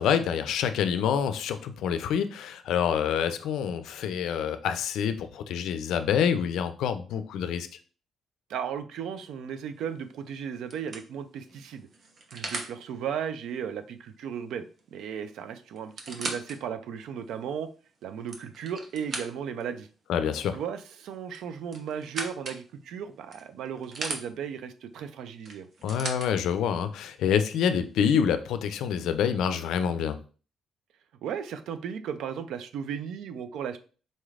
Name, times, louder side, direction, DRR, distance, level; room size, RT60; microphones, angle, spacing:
voice 1, 0.0-7.7 20.1-20.6 25.8-30.2, left 8 dB, 85° left, 10 dB, 0.4 m, -27 dB
voice 2, 8.5-11.9 12.3-14.6 14.9-17.7 18.0-19.9 20.5-25.7 31.2-33.8, right 8 dB, 80° right, 10 dB, 0.4 m, -35 dB
sound 1, 9.8-10.1 10.7-12.8 14.8-14.9 15.1-15.2 15.8-16.6 17.2-17.3 18.0-19.6 21.3-22.6 23.3-24.2 25.4-26.3 27.2-27.3, right 3 dB, 50° right, 0.8 m, -37 dB
4.1 x 3.2 x 2.4 m, 0.38 s
cardioid pair, 90°, 0 cm